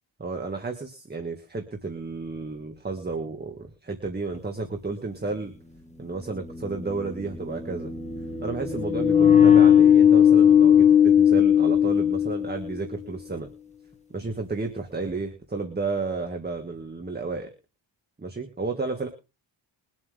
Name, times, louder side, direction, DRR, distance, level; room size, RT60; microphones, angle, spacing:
voice 1, 0.2-5.5 6.0-7.9 8.4-13.5 14.1-17.5 18.2-19.1, right 3 dB, 20° right, 4 dB, 1.8 m, -32 dB
sound 1, 4.4-4.5 5.9-12.8, left 9 dB, 15° left, 1.8 m, -19 dB
22.5 x 7.7 x 3.6 m, 0.31 s
wide cardioid pair, 135°, 46 cm